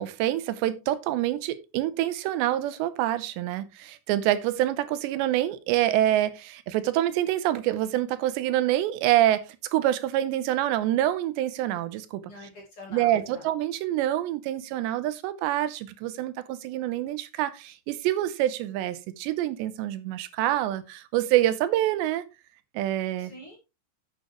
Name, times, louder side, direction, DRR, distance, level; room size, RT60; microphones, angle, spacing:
voice 1, 0.0-12.2 12.9-22.2 22.7-23.3, right 13 dB, 85° right, 3.1 m, -26 dB
voice 2, 12.3-13.5 23.2-23.6, left 1 dB, 45° left, 2.0 m, -45 dB
10.5 x 8.5 x 3.1 m
omnidirectional pair, 4.9 m